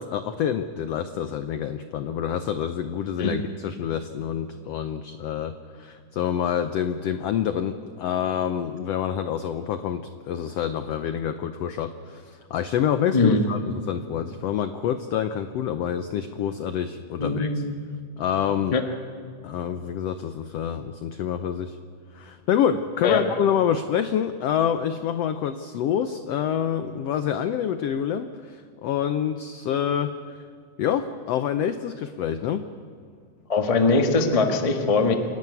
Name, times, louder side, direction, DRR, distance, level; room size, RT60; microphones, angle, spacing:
voice 1, 0.0-17.6 18.2-18.8 19.4-21.8 22.1-30.4 30.8-32.7, left 9 dB, 90° left, 10 dB, 1.4 m, -27 dB
voice 2, 17.2-17.8 18.7-18.8 23.0-23.2 33.5-35.1, left 3 dB, 70° left, 4 dB, 0.3 m, -21 dB
27.0 x 11.5 x 9.6 m, 2.2 s
omnidirectional pair, 3.7 m